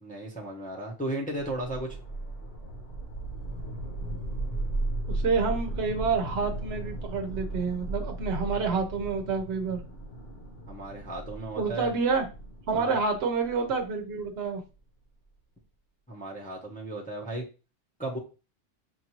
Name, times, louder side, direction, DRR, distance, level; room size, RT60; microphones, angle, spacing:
voice 1, 0.0-2.0 10.7-11.9 12.7-12.9 16.1-17.5 18.0-18.2, right 1 dB, 10° left, -2 dB, 0.8 m, -35 dB
sound 1, 1.4-14.4, right 2 dB, 55° left, 1.1 m, -36 dB
voice 2, 5.1-9.8 11.6-12.2 12.7-14.6, right 4 dB, 60° right, 4 dB, 1.0 m, -28 dB
6.5 x 2.6 x 2.9 m, 0.32 s
omnidirectional pair, 1.2 m